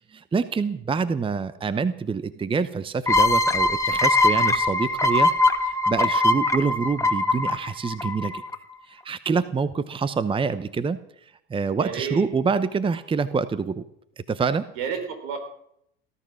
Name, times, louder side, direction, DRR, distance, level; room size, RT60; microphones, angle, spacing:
voice 1, 0.0-5.3 5.7-8.4 8.9-11.0 11.5-13.8 14.3-14.7, right 5 dB, 15° right, 14 dB, 0.8 m, -26 dB
sound 1, 3.1-8.5, left 2 dB, 10° left, 1.5 m, -21 dB
voice 2, 11.8-12.3 14.7-15.4, right 7 dB, 70° right, 5 dB, 4.6 m, -30 dB
18.5 x 12.5 x 6.3 m, 0.74 s
hypercardioid pair, 80°, 30 cm